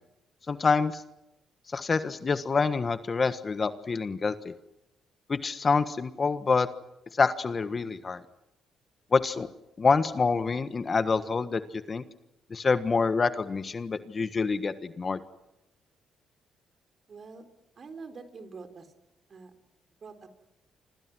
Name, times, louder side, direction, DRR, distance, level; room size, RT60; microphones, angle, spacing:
voice 1, 0.5-1.0 1.7-4.5 5.3-6.7 7.1-8.2 9.1-9.5 9.8-12.0 12.5-15.2, left 4 dB, 35° left, 11 dB, 1.4 m, -26 dB
voice 2, 17.1-17.4 17.8-18.9 19.3-19.5 20.0-20.3, right 4 dB, 45° right, 8 dB, 3.9 m, -45 dB
29.5 x 26.0 x 6.2 m, 0.88 s
cardioid pair, 90°, 0 cm